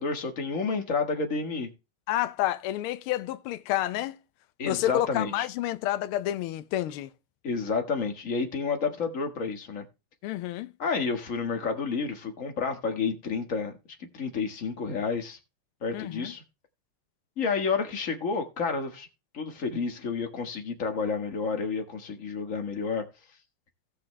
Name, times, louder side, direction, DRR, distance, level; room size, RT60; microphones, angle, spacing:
voice 1, 0.0-1.7 4.6-5.5 7.4-9.8 10.8-13.7 14.1-15.4 15.8-16.4 17.4-19.1 19.3-23.0, left 5 dB, 40° left, 1.7 m, -30 dB
voice 2, 2.1-4.2 4.7-7.1 10.2-10.7 15.9-16.3, left 14 dB, 80° left, 1.5 m, -29 dB
17.0 x 5.8 x 3.2 m
omnidirectional pair, 2.4 m